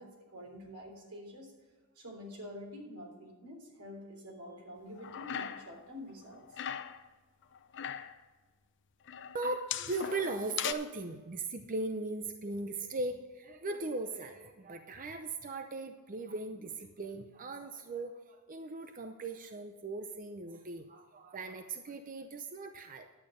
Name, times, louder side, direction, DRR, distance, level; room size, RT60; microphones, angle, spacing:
voice 1, 0.0-1.5 2.0-6.5, left 1 dB, 85° right, 0 dB, 3.5 m, -47 dB
sound 1, 5.0-5.8 6.1-7.0 7.5-8.2 9.1-10.7, left 8 dB, 55° left, 0.6 m, -39 dB
voice 2, 9.3-23.1, right 3 dB, 40° right, 7 dB, 0.6 m, -39 dB
11.0 x 8.8 x 5.1 m, 1.4 s
head